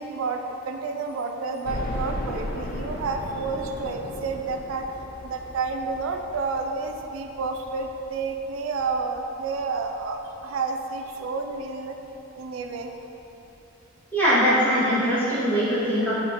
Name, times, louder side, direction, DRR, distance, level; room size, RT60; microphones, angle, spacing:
voice 1, 0.0-4.9 5.2-12.0 12.4-12.9, right 4 dB, 80° right, 5 dB, 0.3 m, -30 dB
sound 1, 1.6-10.6 11.0-11.1 11.5-11.6 12.8-12.9 13.2-13.3, left 1 dB, 45° left, 0.4 m, -37 dB
voice 2, 14.1-16.1, equal, 10° left, -11 dB, 1.0 m, -21 dB
5.1 x 2.8 x 2.8 m, 3.0 s
head